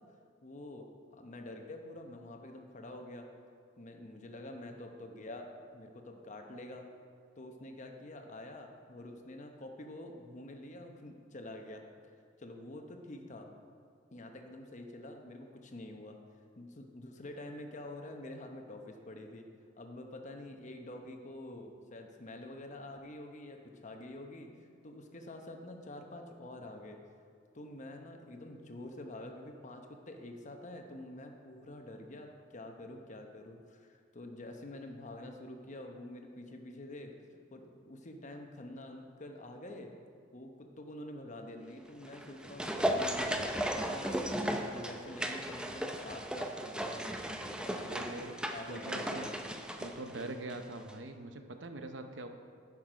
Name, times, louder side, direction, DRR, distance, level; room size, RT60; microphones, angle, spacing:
voice 1, 0.4-3.3 3.8-5.5 5.7-6.9 7.4-11.8 12.1-13.5 14.1-16.2 16.6-19.4 19.8-27.0 27.5-49.4, left 1 dB, 40° left, 4 dB, 0.9 m, -47 dB
sound 1, 42.0-50.6 50.9-51.0, equal, 5° right, 0.5 m, -36 dB
voice 2, 47.9-48.4 48.7-49.3 49.8-52.3, right 2 dB, 70° right, 7 dB, 0.7 m, -43 dB
10.5 x 6.1 x 5.0 m, 2.3 s
head